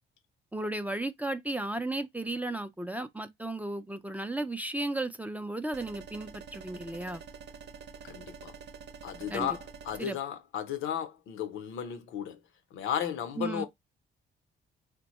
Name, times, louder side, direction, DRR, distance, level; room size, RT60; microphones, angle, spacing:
voice 1, 0.5-7.2 9.3-9.6 10.0-10.2 13.4-13.7, right 2 dB, 10° right, 0.4 m, -34 dB
sound 1, 5.7-10.0, right 6 dB, 60° right, 0.7 m, -47 dB
voice 2, 8.0-8.5 9.0-12.4 12.7-13.7, left 9 dB, 90° left, 0.8 m, -34 dB
3.4 x 2.2 x 3.0 m
cardioid pair, 90°, 20 cm